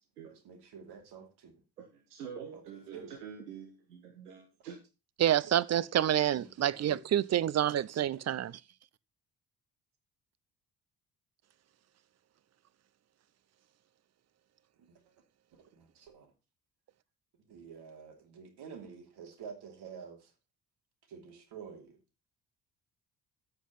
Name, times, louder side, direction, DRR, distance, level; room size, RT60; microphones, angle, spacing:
voice 1, 0.3-1.5 2.5-3.2 6.3-7.0 7.6-8.1 14.8-15.0 15.5-16.3 17.5-20.3 21.1-22.0, right 6 dB, 55° right, 3.1 m, -49 dB
voice 2, 1.8-4.8, right 7 dB, 80° right, 1.4 m, -46 dB
voice 3, 5.2-8.5, right 11 dB, 35° right, 0.7 m, -28 dB
8.3 x 8.0 x 5.7 m
figure-of-eight pair, 45°, 46 cm